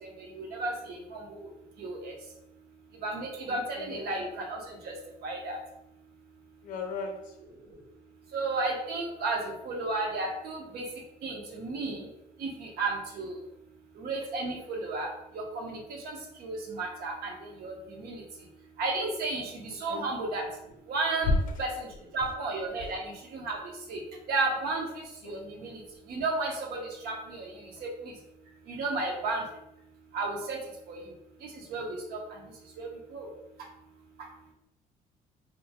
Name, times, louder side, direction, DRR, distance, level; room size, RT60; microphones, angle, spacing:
voice 1, 0.0-1.5 1.8-2.1 3.0-4.9 5.2-5.6 8.3-10.8 11.2-12.1 12.4-13.3 14.0-15.1 15.3-17.3 17.6-18.2 18.8-20.4 20.9-21.9 22.1-24.0 24.3-25.8 26.1-27.5 27.8-28.1 28.7-29.4 30.1-30.6 30.9-31.0 31.4-32.2 32.8-33.3, right 3 dB, 65° right, 1 dB, 0.8 m, -33 dB
voice 2, 3.5-4.2 6.6-7.2 19.9-20.0 25.2-25.3, left 4 dB, 50° left, 3 dB, 0.5 m, -38 dB
2.9 x 2.1 x 2.8 m, 0.84 s
cardioid pair, 110°, 17 cm